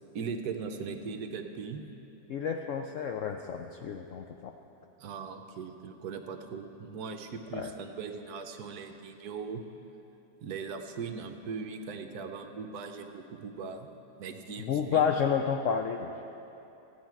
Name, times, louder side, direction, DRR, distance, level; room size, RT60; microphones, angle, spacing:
voice 1, 0.1-1.8 5.0-9.6 10.4-13.9 14.2-15.1, right 5 dB, 70° right, 6 dB, 1.2 m, -39 dB
voice 2, 2.3-4.5 7.6-7.7 14.7-16.1, left 7 dB, 75° left, 4 dB, 0.7 m, -30 dB
15.5 x 9.5 x 4.6 m, 2.9 s
omnidirectional pair, 1.8 m